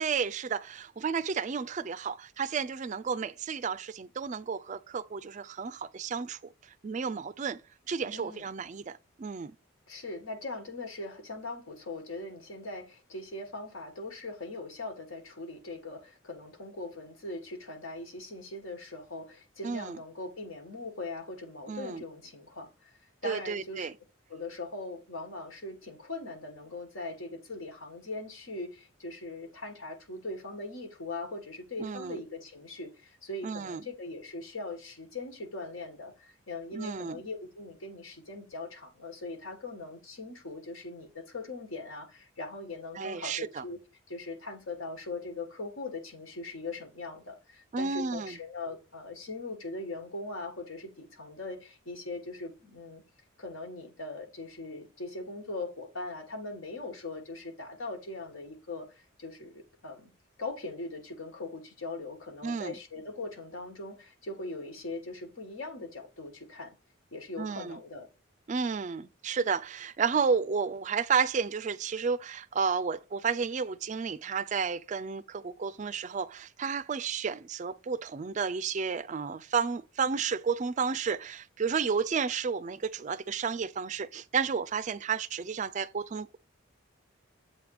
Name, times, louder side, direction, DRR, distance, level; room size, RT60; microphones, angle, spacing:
voice 1, 0.0-6.4 6.8-7.6 7.9-9.5 19.6-20.0 21.7-22.0 23.2-23.9 31.8-32.2 33.4-33.8 36.7-37.2 43.0-43.6 47.7-48.4 62.4-62.7 67.4-67.8 68.5-86.4, right 5 dB, 35° right, 0.3 m, -32 dB
voice 2, 8.1-8.5 9.9-22.9 23.2-23.9 24.3-43.8 44.1-53.0 53.4-60.1 60.4-66.7 67.1-68.1, left 2 dB, 80° left, 1.9 m, -40 dB
7.7 x 3.4 x 4.9 m
head